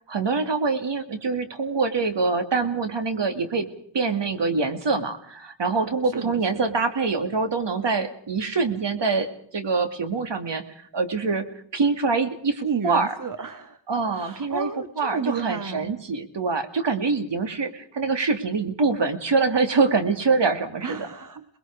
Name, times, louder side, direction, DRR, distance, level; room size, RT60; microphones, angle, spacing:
voice 1, 0.0-3.7 3.9-10.6 10.9-11.5 11.7-13.1 13.9-14.7 15.0-21.1, right 4 dB, 60° right, 8 dB, 2.6 m, -24 dB
voice 2, 6.1-6.7 12.6-13.8 14.1-15.9 20.8-21.4, right 5 dB, 40° right, 11 dB, 1.3 m, -32 dB
28.0 x 21.0 x 4.8 m, 0.62 s
wide cardioid pair, 95°, 47 cm